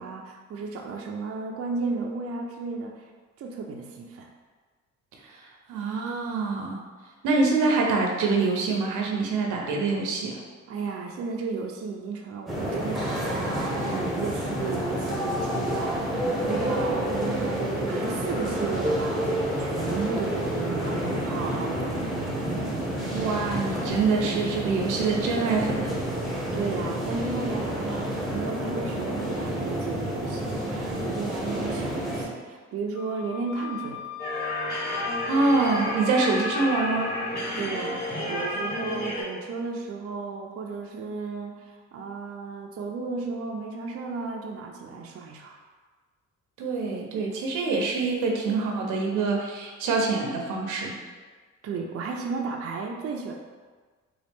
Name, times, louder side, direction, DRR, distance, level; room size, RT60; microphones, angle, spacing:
voice 1, 0.0-3.1 3.4-4.3 10.7-22.5 26.2-34.0 37.6-45.6 51.6-53.3, right 4 dB, 50° right, 1 dB, 0.5 m, -34 dB
voice 2, 5.7-6.8 7.2-10.4 23.1-26.0 35.3-37.1 46.6-50.9, right 3 dB, 85° right, 0 dB, 0.7 m, -25 dB
sound 1, 12.5-32.3, right 1 dB, ahead, 1.0 m, -29 dB
Wind instrument woodwind instrument, 33.0-36.6, left 11 dB, 55° left, 0.4 m, -38 dB
sound 2, 34.2-39.2, left 1 dB, 30° left, 1.4 m, -31 dB
4.0 x 2.3 x 3.5 m, 1.4 s
cardioid pair, 90°, 30 cm